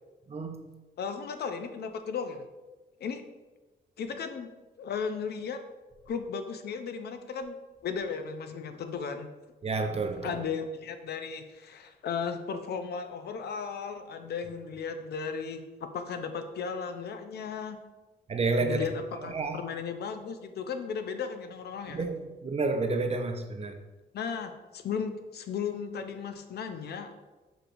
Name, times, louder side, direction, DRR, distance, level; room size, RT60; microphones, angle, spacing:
voice 1, 0.3-0.7 9.6-10.4 18.3-18.9 19.3-19.7 21.9-23.8, right 3 dB, 35° right, 0.5 m, -30 dB
voice 2, 1.0-2.5 3.0-3.2 4.0-4.5 4.8-5.6 6.1-7.6 7.8-9.3 10.2-17.8 18.6-22.1 24.1-27.3, left 6 dB, 65° left, 0.5 m, -35 dB
6.5 x 3.0 x 2.5 m
cardioid pair, 70°, 18 cm